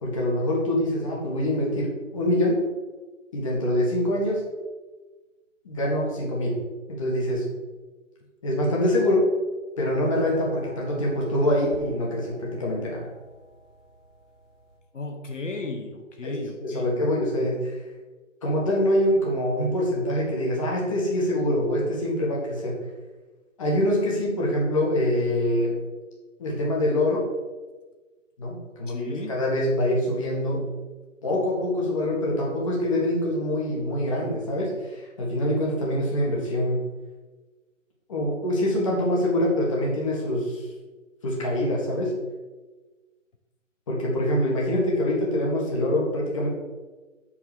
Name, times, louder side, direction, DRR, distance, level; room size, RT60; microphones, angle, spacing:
voice 1, 0.0-2.6 3.3-4.4 5.6-6.6 6.9-7.4 8.4-9.3 9.8-13.1 16.2-17.8 18.4-22.8 23.6-25.8 26.4-27.2 28.4-30.7 31.2-36.8 38.1-40.7 41.2-42.1 43.9-46.5, left 1 dB, 25° left, -3 dB, 1.9 m, -25 dB
sound 1, 9.8-14.8, right 2 dB, 5° right, 0.8 m, -46 dB
voice 2, 14.9-16.9 28.9-29.4, left 2 dB, 70° left, 4 dB, 1.4 m, -35 dB
6.1 x 5.9 x 7.1 m, 1.3 s
hypercardioid pair, 165°, 38 cm